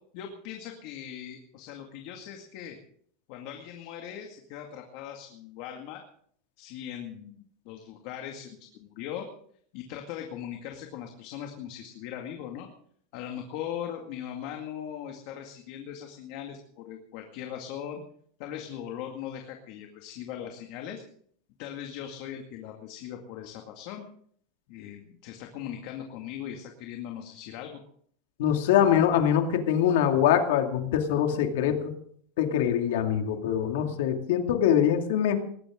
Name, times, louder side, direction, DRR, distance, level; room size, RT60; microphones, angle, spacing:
voice 1, 0.1-2.8 3.3-6.0 6.6-9.3 9.7-12.7 13.1-18.0 18.4-21.0 21.6-24.0 24.7-27.8, left 10 dB, 55° left, 3 dB, 2.1 m, -39 dB
voice 2, 28.4-31.9 32.4-35.4, left 9 dB, 75° left, 5 dB, 2.4 m, -23 dB
20.0 x 16.0 x 3.8 m, 0.62 s
supercardioid pair, 160°, 0 cm